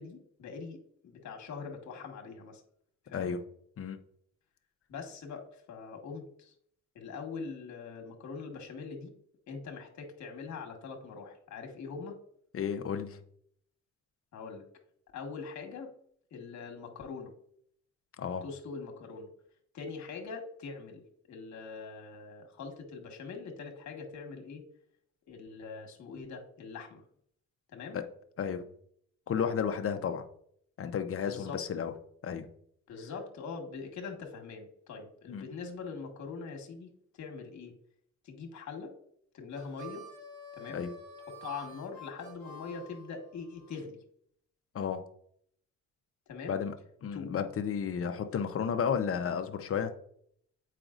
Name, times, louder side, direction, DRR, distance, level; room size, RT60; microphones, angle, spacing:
voice 1, 0.0-2.6 3.1-3.3 4.9-6.5 6.9-9.1 9.5-12.2 14.3-14.6 15.1-15.9 16.3-17.3 18.4-19.3 19.7-24.6 25.2-27.0 27.7-28.0 31.2-31.6 32.9-36.9 37.1-37.7 38.2-38.9 39.3-40.0 40.6-40.8 41.3-44.0 46.3-46.6 47.1-47.5, left 5 dB, 65° left, 3 dB, 1.5 m, -43 dB
voice 2, 12.5-13.2 18.2-18.4 27.9-28.0 28.4-28.6 29.3-30.2 30.8-31.9 32.2-32.4 35.3-35.4 40.7-40.9 44.7-45.0 46.5-46.7 47.0-49.9, left 7 dB, 50° left, 8 dB, 0.8 m, -32 dB
Harmonica, 39.5-43.8, equal, 75° right, 1.9 m, -49 dB
7.6 x 5.0 x 2.5 m, 0.67 s
cardioid pair, 90°, 30 cm